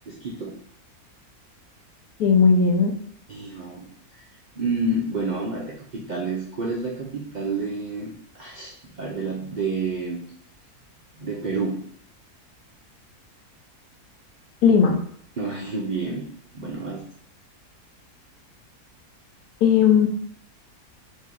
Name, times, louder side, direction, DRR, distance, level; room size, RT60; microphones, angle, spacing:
voice 1, 0.1-0.5 3.3-3.9 4.5-8.7 9.0-10.2 11.2-11.8 15.4-16.3 16.5-17.0, right 3 dB, 75° right, -3 dB, 0.4 m, -29 dB
voice 2, 2.2-2.9 14.6-15.0 19.6-20.1, left 6 dB, 85° left, 5 dB, 1.2 m, -17 dB
4.1 x 2.7 x 3.7 m, 0.65 s
omnidirectional pair, 1.6 m